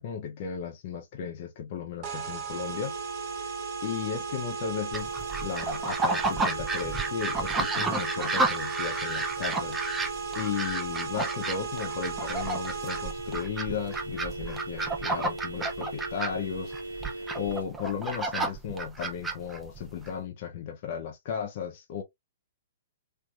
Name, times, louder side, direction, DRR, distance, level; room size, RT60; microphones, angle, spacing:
voice 1, 0.0-2.9 3.3-3.5 3.8-5.1 5.4-9.8 10.4-22.0, left 7 dB, 50° left, 0.7 m, -35 dB
sound 1, 2.0-13.4, right 7 dB, 35° right, 1.4 m, -37 dB
sound 2, 2.5-17.6, right 2 dB, 90° right, 0.8 m, -39 dB
sound 3, 4.9-20.1, right 3 dB, 10° right, 0.6 m, -32 dB
3.2 x 3.1 x 2.4 m
figure-of-eight pair, 120°, 0 cm